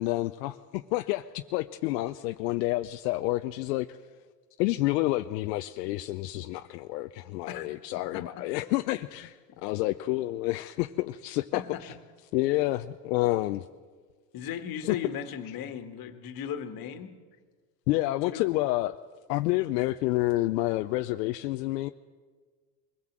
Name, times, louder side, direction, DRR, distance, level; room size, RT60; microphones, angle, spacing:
voice 1, 0.0-4.0 4.6-11.9 12.3-13.6 14.8-15.0 17.9-19.0 19.3-21.9, left 18 dB, 80° left, 8 dB, 0.8 m, -29 dB
voice 2, 11.5-11.9 14.3-17.2 18.3-18.4, left 8 dB, 45° left, 8 dB, 1.9 m, -37 dB
22.5 x 16.5 x 7.5 m, 1.5 s
supercardioid pair, 110°, 49 cm